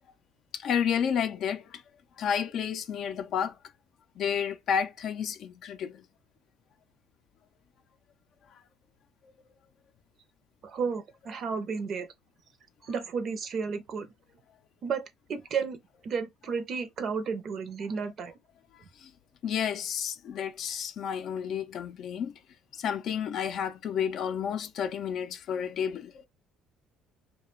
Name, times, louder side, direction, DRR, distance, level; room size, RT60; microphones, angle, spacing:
voice 1, 0.5-1.8 2.2-3.6 4.2-6.0 19.0-19.1 19.4-22.3 22.7-26.3, left 8 dB, 60° left, 0.4 m, -31 dB
voice 2, 10.6-12.1 12.9-14.1 14.8-18.3, right 5 dB, 55° right, 0.6 m, -33 dB
2.3 x 2.2 x 3.1 m
supercardioid pair, 85°, 0 cm